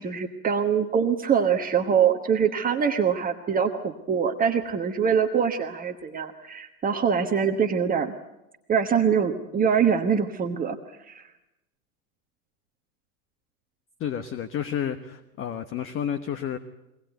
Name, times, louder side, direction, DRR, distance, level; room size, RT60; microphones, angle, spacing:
voice 1, 0.0-8.1 8.7-11.3, right 7 dB, 20° right, 5 dB, 1.3 m, -24 dB
voice 2, 14.0-16.6, left 9 dB, 30° left, 10 dB, 1.3 m, -30 dB
22.5 x 19.0 x 9.1 m, 0.93 s
hypercardioid pair, 105°, 43 cm